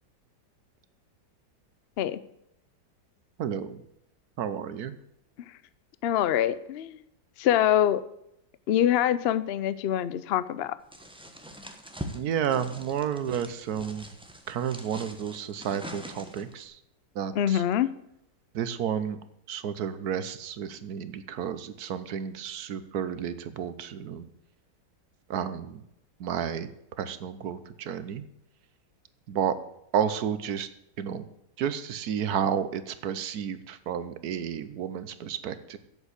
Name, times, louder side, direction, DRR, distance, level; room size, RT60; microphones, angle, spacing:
voice 1, 3.4-3.8 4.4-4.9 12.1-14.0 14.5-16.8 17.1-17.6 18.5-19.2 19.5-24.3 25.3-25.8 26.2-26.7 27.0-28.2 29.3-29.5 29.9-30.7 31.0-31.3 31.6-35.8, right 8 dB, 70° right, 13 dB, 1.2 m, -31 dB
voice 2, 6.0-7.0 7.4-8.0 8.7-10.8 17.3-17.9, left 11 dB, 80° left, 15 dB, 0.5 m, -25 dB
Searching through desk drawer, 10.9-16.6, equal, 5° right, 0.8 m, -43 dB
8.3 x 7.1 x 8.0 m, 0.80 s
omnidirectional pair, 1.8 m